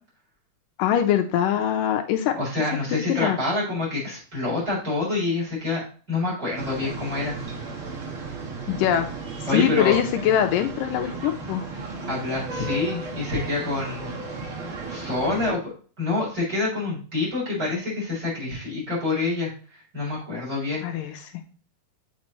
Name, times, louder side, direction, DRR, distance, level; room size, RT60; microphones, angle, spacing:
voice 1, 0.8-2.3 2.9-3.4 8.7-9.1 9.5-11.6 20.8-21.1, left 10 dB, 85° left, 5 dB, 2.2 m, -23 dB
voice 2, 2.3-7.4 9.5-10.0 12.1-14.1 14.6-15.7 16.0-21.1, left 3 dB, 20° right, -7 dB, 4.1 m, -27 dB
sound 1, 6.6-15.5, right 3 dB, 55° right, 1.7 m, -34 dB
7.3 x 5.2 x 3.1 m, 0.40 s
omnidirectional pair, 4.0 m